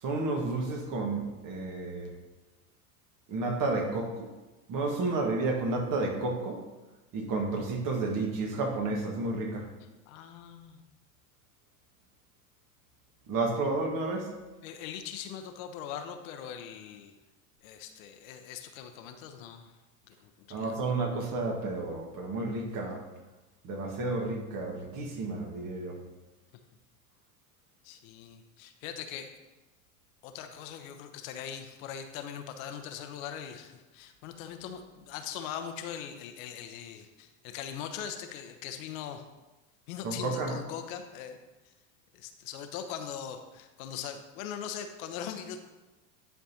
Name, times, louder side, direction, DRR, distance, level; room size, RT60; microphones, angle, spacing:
voice 1, 0.0-2.1 3.3-4.3 4.7-6.6 7.1-9.7 13.3-14.3 20.5-23.0 23.6-26.0 40.0-40.6, right 3 dB, 45° right, 2 dB, 1.6 m, -31 dB
voice 2, 10.1-10.8 14.6-17.1 17.6-19.7 20.1-20.9 27.8-29.3 30.2-39.2 39.9-41.4 42.1-45.6, left 8 dB, 65° left, 7 dB, 0.9 m, -41 dB
10.5 x 4.4 x 2.8 m, 1.1 s
hypercardioid pair, 85°, 44 cm